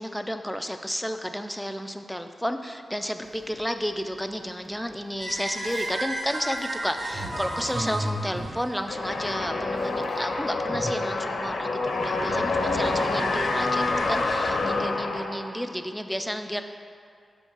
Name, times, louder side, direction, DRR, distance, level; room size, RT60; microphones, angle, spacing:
voice 1, 0.0-16.6, equal, ahead, 7 dB, 0.3 m, -32 dB
sound 1, 3.2-3.9 4.6-4.7 5.1-9.4 9.6-10.3 10.5-12.6, right 1 dB, 40° right, 1.0 m, -37 dB
sound 2, 5.2-9.3, right 1 dB, 75° right, 1.5 m, -33 dB
sound 3, 8.9-15.6, left 3 dB, 70° left, 0.7 m, -27 dB
6.3 x 5.4 x 6.0 m, 2.3 s
wide cardioid pair, 165°, 0 cm